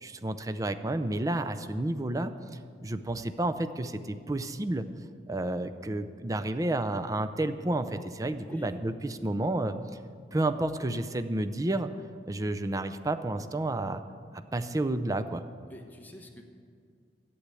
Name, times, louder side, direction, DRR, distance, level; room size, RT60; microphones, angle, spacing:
voice 1, 0.0-2.3 2.8-4.9 5.3-9.8 10.3-11.9 12.3-14.0 14.3-15.5, right 2 dB, 20° right, 10 dB, 0.5 m, -30 dB
voice 2, 8.4-8.8 15.7-16.4, equal, 10° left, 3 dB, 1.1 m, -47 dB
11.5 x 8.6 x 8.2 m, 2.2 s
head